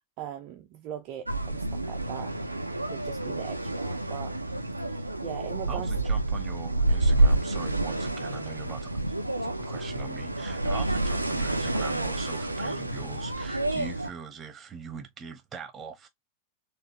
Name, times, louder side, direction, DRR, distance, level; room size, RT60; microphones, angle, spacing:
voice 1, 0.2-2.4 2.9-4.3 4.8-5.9, right 10 dB, 40° right, 0.6 m, -40 dB
sound 1, 1.3-14.1, right 2 dB, 85° right, 0.5 m, -28 dB
voice 2, 5.7-9.0 9.4-16.1, right 6 dB, 25° right, 1.1 m, -42 dB
4.2 x 2.7 x 2.9 m
figure-of-eight pair, 90°, 0 cm